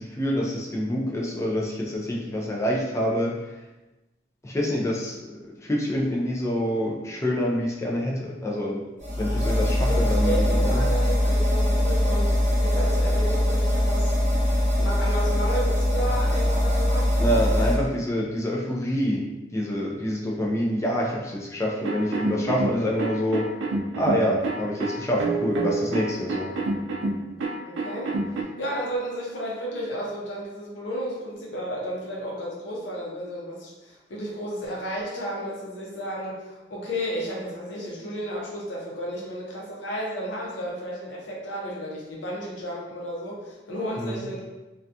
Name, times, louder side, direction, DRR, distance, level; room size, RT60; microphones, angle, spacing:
voice 1, 0.0-3.6 4.4-8.8 9.1-10.9 17.2-19.2 19.5-23.5 23.9-26.6 44.0-44.2, equal, 15° left, -2 dB, 0.3 m, -26 dB
sound 1, 9.0-17.7, left 1 dB, 40° right, 0.8 m, -22 dB
voice 2, 9.9-14.2 14.4-17.1 27.6-28.1 28.6-44.4, equal, 80° left, -3 dB, 0.7 m, -33 dB
sound 2, 21.8-28.4, right 2 dB, 80° right, 0.4 m, -28 dB
2.3 x 2.3 x 2.6 m, 1.1 s
head